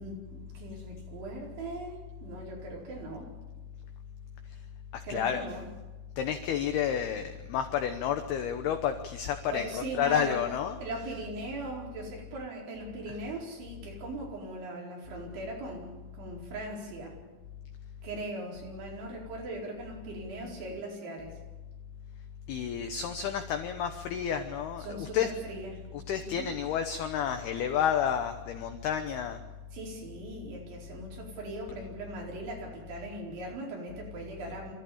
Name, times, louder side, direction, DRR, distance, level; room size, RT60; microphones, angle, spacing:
voice 1, 0.0-3.3 5.0-5.6 9.5-10.4 10.8-17.2 18.0-21.4 24.8-25.9 26.2-26.5 29.7-34.7, right 2 dB, 70° right, -2 dB, 7.0 m, -40 dB
voice 2, 4.9-5.4 6.2-10.8 13.1-13.2 22.5-25.3 25.9-29.4, left 8 dB, 75° left, 7 dB, 2.4 m, -30 dB
25.5 x 14.5 x 8.7 m, 1.2 s
omnidirectional pair, 5.6 m